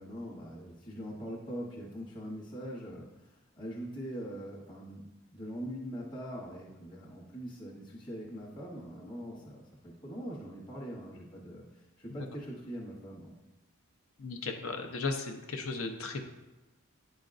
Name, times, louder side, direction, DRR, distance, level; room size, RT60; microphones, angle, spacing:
voice 1, 0.0-3.1 3.6-5.0 5.3-11.6 12.0-13.4, equal, 20° left, -6 dB, 0.9 m, -42 dB
voice 2, 14.2-16.2, left 3 dB, 75° left, 5 dB, 0.8 m, -36 dB
9.3 x 5.1 x 2.5 m, 1.1 s
head